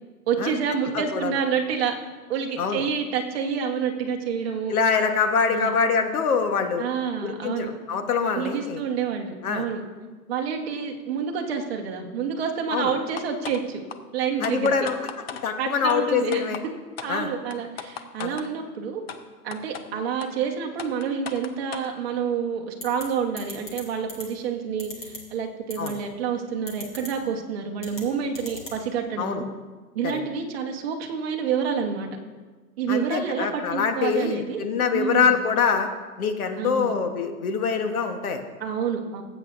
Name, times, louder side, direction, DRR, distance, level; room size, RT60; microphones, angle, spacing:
voice 1, 0.3-1.9 2.3-4.7 5.5-5.7 6.8-7.7 8.3-9.8 10.3-13.8 14.1-14.7 15.6-16.4 17.0-19.0 19.4-29.4 29.9-32.1 32.8-34.6 34.9-35.3 36.6-36.9 38.6-39.2, right 7 dB, 40° right, 2 dB, 1.2 m, -28 dB
voice 2, 0.9-1.4 2.6-2.8 4.7-6.8 7.2-8.8 9.4-9.6 12.7-12.9 14.4-15.0 15.4-16.6 17.1-17.3 18.2-18.4 25.8-26.0 29.2-29.4 30.0-30.2 32.9-35.9 36.2-38.4, left 6 dB, 60° left, 6 dB, 1.3 m, -24 dB
sound 1, 13.2-13.6 13.9-14.0 14.4-15.4 15.9-16.0 16.3-16.6 17.0-17.1 17.5-18.5 19.1-19.2 19.5-19.8 20.2-20.3 20.8-21.9, left 7 dB, 40° left, 0.5 m, -36 dB
sound 2, 22.8-23.0 23.4-23.8 24.1-24.2 24.8-25.2 25.7-25.9 26.7-27.1 27.8-28.0 28.4-28.8, left 1 dB, 10° left, 1.0 m, -36 dB
18.5 x 8.1 x 2.6 m, 1.3 s
hypercardioid pair, 160°, 49 cm